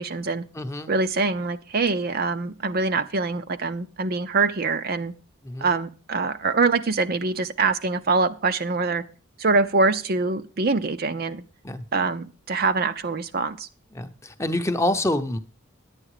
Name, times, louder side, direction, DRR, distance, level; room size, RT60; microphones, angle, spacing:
voice 1, 0.0-0.4 0.9-5.1 5.6-9.0 9.4-11.4 11.9-13.7, right 4 dB, 45° right, 10 dB, 0.6 m, -24 dB
voice 2, 0.5-0.9 5.4-5.7 11.6-11.8 13.9-15.4, left 1 dB, 15° left, 8 dB, 0.8 m, -26 dB
10.5 x 8.9 x 4.9 m, 0.35 s
head